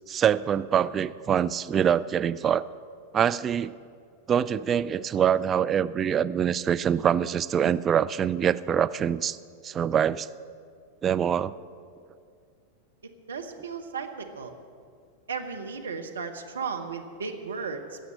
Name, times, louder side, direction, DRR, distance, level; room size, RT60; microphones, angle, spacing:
voice 1, 0.1-2.7 3.1-3.7 4.3-9.4 9.6-10.3 11.0-11.5, right 8 dB, 25° right, 13 dB, 0.4 m, -24 dB
voice 2, 13.3-14.5 15.3-18.0, right 5 dB, 70° right, 5 dB, 1.2 m, -35 dB
17.5 x 7.1 x 7.7 m, 2.3 s
figure-of-eight pair, 90°, 0 cm